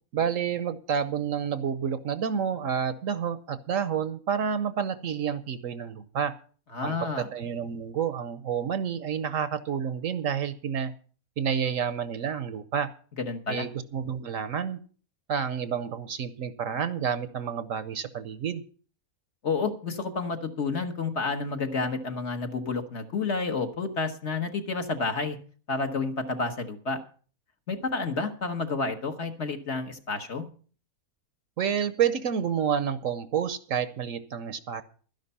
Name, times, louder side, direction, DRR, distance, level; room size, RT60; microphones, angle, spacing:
voice 1, 0.1-6.3 6.8-10.9 11.4-12.9 13.5-14.8 15.3-18.6 31.6-34.8, right 7 dB, 65° right, 12 dB, 1.1 m, -29 dB
voice 2, 6.7-7.3 13.2-13.7 19.4-25.4 25.7-27.0 27.7-30.4, left 4 dB, 50° left, 5 dB, 1.4 m, -30 dB
12.0 x 10.5 x 5.5 m, 0.42 s
omnidirectional pair, 1.6 m